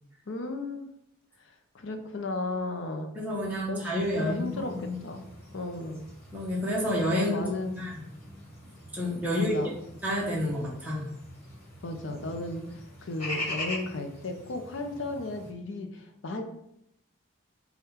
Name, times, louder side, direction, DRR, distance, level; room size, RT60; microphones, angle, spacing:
voice 1, 0.3-0.9 1.7-3.1 3.7-5.2 5.5-6.1 7.1-7.8 9.3-9.7 11.8-16.4, left 2 dB, 60° left, 4 dB, 0.5 m, -35 dB
voice 2, 3.1-5.0 6.3-7.4 7.7-7.9 8.9-9.6 10.0-11.1, left 1 dB, 10° right, -6 dB, 0.8 m, -29 dB
sound 1, 3.9-15.5, left 1 dB, 30° left, 1.4 m, -43 dB
3.6 x 2.3 x 4.2 m, 0.76 s
head